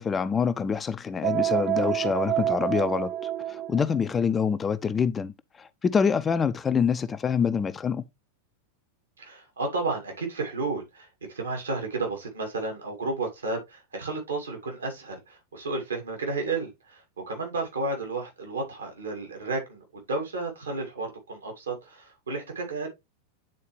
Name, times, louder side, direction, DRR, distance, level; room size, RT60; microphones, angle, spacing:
voice 1, 0.0-5.3 5.6-8.0, left 6 dB, 20° left, 0.5 m, -26 dB
sound 1, 1.2-4.0, right 12 dB, 35° right, 0.3 m, -28 dB
voice 2, 9.2-22.9, right 3 dB, 70° right, 2.4 m, -32 dB
9.0 x 4.2 x 3.2 m
figure-of-eight pair, 90°, 0 cm